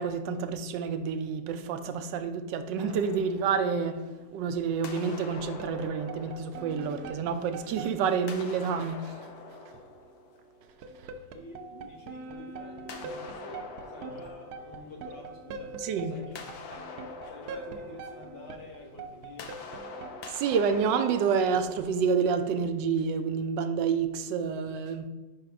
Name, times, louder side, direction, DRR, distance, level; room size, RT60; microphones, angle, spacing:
voice 1, 0.0-9.2 11.0-11.1 15.8-16.2 20.3-25.1, right 6 dB, 85° right, 1.3 m, -29 dB
sound 1, 2.8-4.4 4.8-7.6 8.2-11.1 12.9-15.7 16.0-22.7, left 5 dB, 70° left, 1.2 m, -46 dB
sound 2, 3.7-4.3 5.4-9.7 10.6-22.0, right 4 dB, 70° right, 1.0 m, -44 dB
voice 2, 11.3-16.9 17.3-19.7, left 2 dB, 85° left, 1.9 m, -48 dB
5.3 x 5.0 x 4.6 m
omnidirectional pair, 1.9 m